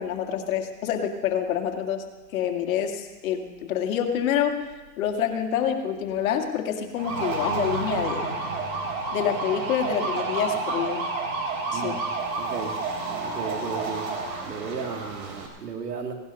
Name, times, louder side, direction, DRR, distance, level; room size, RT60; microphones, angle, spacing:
voice 1, 0.0-2.0 2.3-4.7 5.0-8.3 9.1-11.1 11.7-11.9, left 9 dB, 60° left, 4 dB, 2.1 m, -27 dB
sound 1, 7.0-15.5, right 3 dB, 60° right, 3.7 m, -30 dB
voice 2, 11.7-12.0 12.4-12.8 13.2-14.1 14.4-16.1, right 5 dB, 90° right, 4 dB, 2.6 m, -34 dB
17.0 x 11.5 x 5.4 m, 1.2 s
hypercardioid pair, 135°, 46 cm